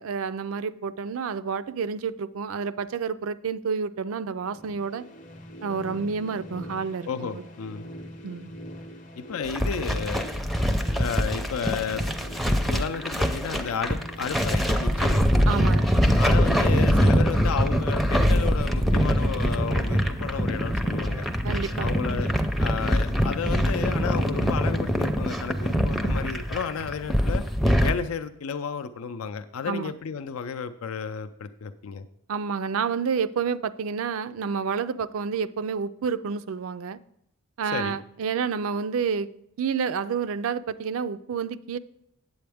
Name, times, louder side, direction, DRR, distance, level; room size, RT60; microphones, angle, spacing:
voice 1, 0.0-5.0 5.6-7.4 8.2-8.5 15.5-15.9 21.4-21.9 29.6-30.0 32.3-37.0 37.6-39.3 39.6-41.8, right 6 dB, 70° right, 14 dB, 0.4 m, -29 dB
sound 1, 4.5-16.4, equal, 35° left, 0.7 m, -43 dB
voice 2, 7.1-7.9 9.2-10.3 10.9-12.0 12.7-15.2 16.2-21.3 21.8-22.3 22.6-27.4 27.8-32.1 37.7-38.0, left 6 dB, 75° left, 9 dB, 0.4 m, -32 dB
sound 2, 9.4-27.9, equal, ahead, 0.5 m, -23 dB
8.4 x 7.9 x 3.4 m, 0.76 s
head